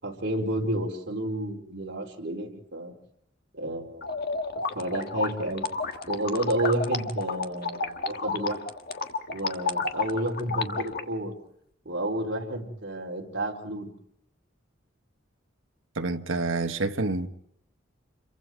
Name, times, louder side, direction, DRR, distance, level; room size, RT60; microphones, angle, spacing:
voice 1, 0.0-2.9 3.5-4.2 4.7-5.6 6.1-8.6 9.3-11.3 11.8-13.9, right 1 dB, 60° right, 4.5 m, -30 dB
Granulized Mallet Hits, 4.0-11.0, left 4 dB, 55° left, 1.5 m, -31 dB
voice 2, 15.9-17.3, right 3 dB, 80° right, 1.4 m, -28 dB
28.5 x 23.0 x 4.7 m
head